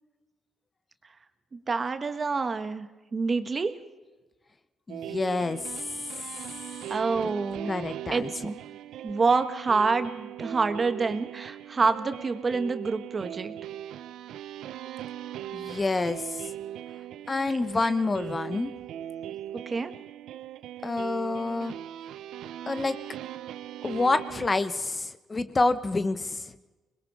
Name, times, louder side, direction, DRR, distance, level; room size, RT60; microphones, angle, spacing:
voice 1, 1.5-2.9 3.1-3.8 6.9-7.7 8.1-8.6 9.0-13.5 19.7-19.9, right 4 dB, 35° right, 9 dB, 1.5 m, -27 dB
voice 2, 4.9-5.7 7.7-8.3 15.5-16.5 17.3-18.7 20.8-21.7 22.7-23.0 23.8-26.5, left 3 dB, 25° left, 11 dB, 1.0 m, -28 dB
sound 1, 4.9-24.6, right 11 dB, 85° right, 0.6 m, -39 dB
25.5 x 21.5 x 4.9 m, 1.2 s
cardioid pair, 90°, 0 cm